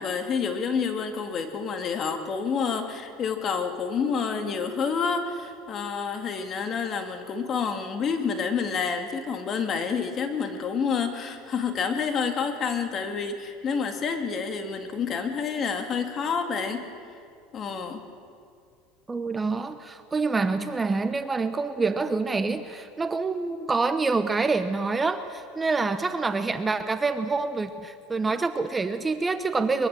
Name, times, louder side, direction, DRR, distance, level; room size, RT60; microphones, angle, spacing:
voice 1, 0.0-16.9 17.5-18.0, left 6 dB, 35° left, 6 dB, 2.3 m, -28 dB
voice 2, 19.1-29.9, right 4 dB, 15° right, 10 dB, 0.9 m, -26 dB
23.0 x 22.0 x 7.6 m, 2.3 s
supercardioid pair, 120°, 0 cm